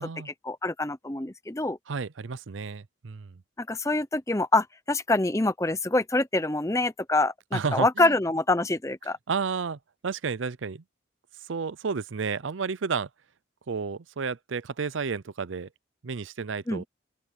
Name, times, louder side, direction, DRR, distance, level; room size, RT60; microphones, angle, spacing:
voice 1, 0.3-1.8 3.6-9.2 16.7-16.8, left 2 dB, 15° left, 0.7 m, -26 dB
voice 2, 1.9-3.4 7.5-8.2 9.3-10.8 11.4-13.1 13.7-15.7 16.0-16.8, right 5 dB, 85° right, 0.6 m, -32 dB
open air
head